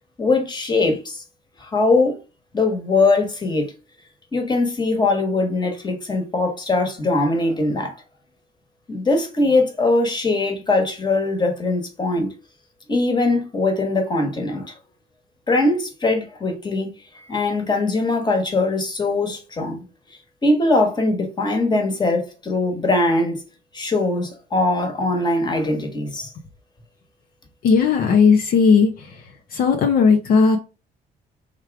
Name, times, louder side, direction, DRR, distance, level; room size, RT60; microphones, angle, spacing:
voice 1, 0.2-1.2 1.6-2.1 2.5-3.7 4.3-7.9 8.9-12.3 12.9-14.7 15.5-16.9 17.3-19.8 20.4-23.4 23.7-26.3, left 2 dB, 25° left, 1.4 m, -21 dB
voice 2, 27.6-29.2 29.5-30.6, left 5 dB, 60° left, 0.8 m, -16 dB
3.6 x 3.1 x 4.6 m
cardioid pair, 110°, 17 cm